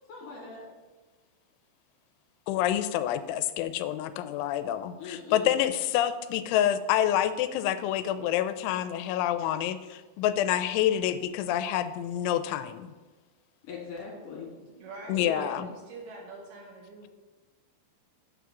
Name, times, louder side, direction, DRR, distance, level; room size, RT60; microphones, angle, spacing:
voice 1, 0.1-0.7 5.0-5.5 13.6-14.5 15.2-15.4, left 5 dB, 55° left, -4 dB, 3.3 m, -40 dB
voice 2, 2.5-12.9 15.1-15.7, left 11 dB, 90° left, 11 dB, 3.0 m, -27 dB
voice 3, 14.8-17.1, right 2 dB, 70° right, -1 dB, 2.7 m, -43 dB
9.3 x 3.7 x 7.1 m, 1.2 s
omnidirectional pair, 5.3 m